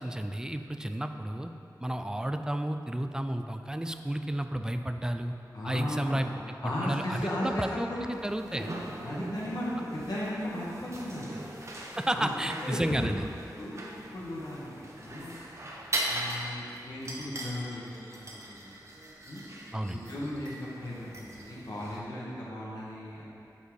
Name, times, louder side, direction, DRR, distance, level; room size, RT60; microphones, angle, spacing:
voice 1, 0.0-1.5 1.8-5.3 5.6-6.3 6.6-8.7 12.0-13.3 19.7-20.0, right 1 dB, 10° right, 7 dB, 0.4 m, -32 dB
voice 2, 5.5-6.2 6.6-8.0 8.4-11.3 12.1-12.3 12.6-13.1 13.6-13.8 14.1-15.4 16.1-18.8 19.2-19.4 19.9-23.2, left 1 dB, 65° left, -7 dB, 1.5 m, -36 dB
sound 1, 8.1-22.0, right 1 dB, 40° right, 0.9 m, -40 dB
8.2 x 4.1 x 4.8 m, 2.6 s
wide cardioid pair, 75°, 7 cm